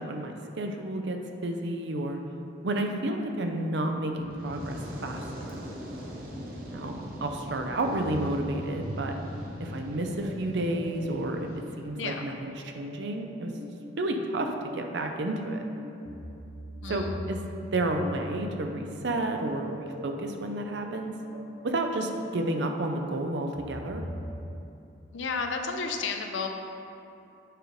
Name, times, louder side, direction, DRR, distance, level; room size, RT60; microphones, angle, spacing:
voice 1, 0.0-2.2 2.6-5.6 6.7-9.2 9.6-11.5 11.8-13.5 14.0-15.7 16.9-17.4 17.7-21.1 21.6-24.0, right 1 dB, 70° right, 4 dB, 0.6 m, -31 dB
Fire, 4.1-11.7, equal, 50° right, 0.9 m, -41 dB
sound 1, 7.9-24.3, equal, 90° right, 1.0 m, -43 dB
voice 2, 16.8-17.3 25.1-26.5, left 4 dB, 85° left, 4 dB, 0.6 m, -32 dB
7.6 x 5.1 x 3.1 m, 2.7 s
head